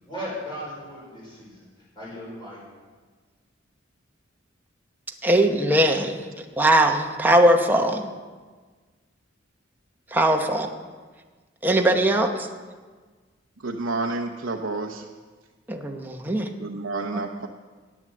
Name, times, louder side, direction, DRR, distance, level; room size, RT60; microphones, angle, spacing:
voice 1, 0.0-1.7 2.0-2.6, equal, 25° left, -7 dB, 5.2 m, -36 dB
voice 2, 5.2-8.1 10.1-10.7 11.6-12.5 15.7-16.5 17.1-17.2, right 1 dB, 10° right, 2 dB, 1.0 m, -20 dB
voice 3, 13.6-15.1 16.6-17.5, right 3 dB, 80° right, 2 dB, 0.8 m, -29 dB
10.5 x 9.6 x 7.7 m, 1.4 s
head